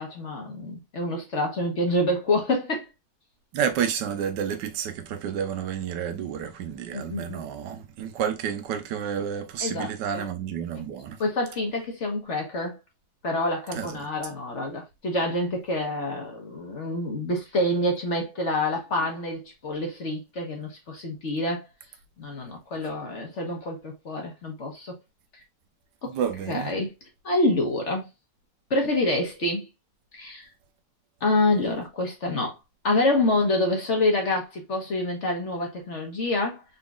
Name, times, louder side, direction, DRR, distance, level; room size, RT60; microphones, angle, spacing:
voice 1, 0.0-2.9 6.9-7.4 9.6-10.3 11.2-12.8 13.2-21.6 22.2-25.0 26.0-26.1 26.5-26.9 27.2-28.1 28.7-29.6 30.1-30.5 31.2-32.5 32.8-36.6, left 2 dB, 45° left, 1.2 m, -27 dB
voice 2, 3.5-11.2 13.7-14.0 26.1-26.7, right 8 dB, 75° right, 1.3 m, -30 dB
4.0 x 3.7 x 2.3 m
omnidirectional pair, 1.9 m